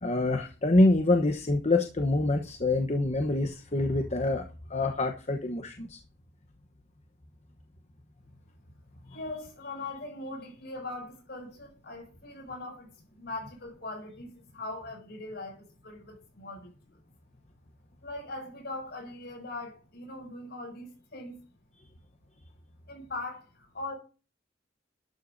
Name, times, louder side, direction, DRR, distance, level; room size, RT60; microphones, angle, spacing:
voice 1, 0.0-6.0, left 2 dB, 40° left, 1.0 m, -26 dB
voice 2, 9.1-16.7 18.0-21.4 22.9-23.9, left 2 dB, 60° left, 6.6 m, -40 dB
12.0 x 12.0 x 2.7 m
head